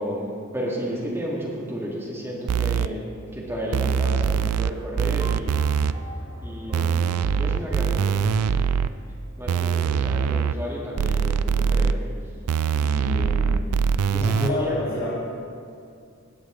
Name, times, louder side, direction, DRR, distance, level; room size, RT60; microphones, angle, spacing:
voice 1, 0.0-5.6 6.4-8.6 9.4-12.0 12.8-13.7 14.1-14.8, equal, 10° right, -6 dB, 1.9 m, -32 dB
sound 1, 2.5-2.9 3.7-4.7 5.0-5.9 6.7-8.9 9.5-10.5 11.0-11.9 12.5-14.5, right 6 dB, 85° right, 0.4 m, -22 dB
sound 2, 5.2-9.4, right 1 dB, 25° right, 1.6 m, -40 dB
voice 2, 14.2-15.1, left 2 dB, 65° left, -8 dB, 2.4 m, -29 dB
16.5 x 8.4 x 3.8 m, 2.3 s
head